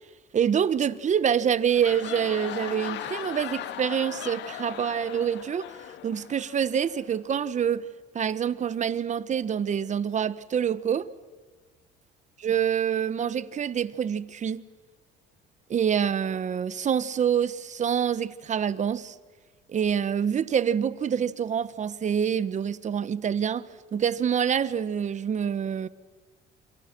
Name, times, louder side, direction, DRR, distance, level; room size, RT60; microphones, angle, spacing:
voice 1, 0.3-5.7 6.0-7.9 8.1-11.1 12.4-14.6 15.7-19.1 19.7-25.9, right 8 dB, 40° right, 1.2 m, -26 dB
sound 1, 1.5-7.1, left 11 dB, 70° left, 1.6 m, -38 dB
28.0 x 28.0 x 6.2 m
cardioid pair, 110°, 19 cm